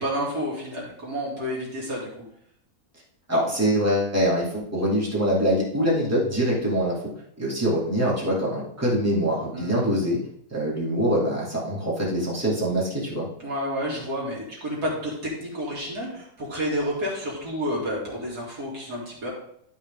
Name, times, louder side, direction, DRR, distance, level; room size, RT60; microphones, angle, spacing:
voice 1, 0.0-2.1 9.5-9.9 13.4-19.3, equal, 85° right, -4 dB, 3.2 m, -30 dB
voice 2, 3.3-6.9 7.4-10.2 10.5-13.3, equal, 10° right, -6 dB, 2.5 m, -24 dB
11.5 x 5.7 x 3.6 m, 0.71 s
omnidirectional pair, 1.6 m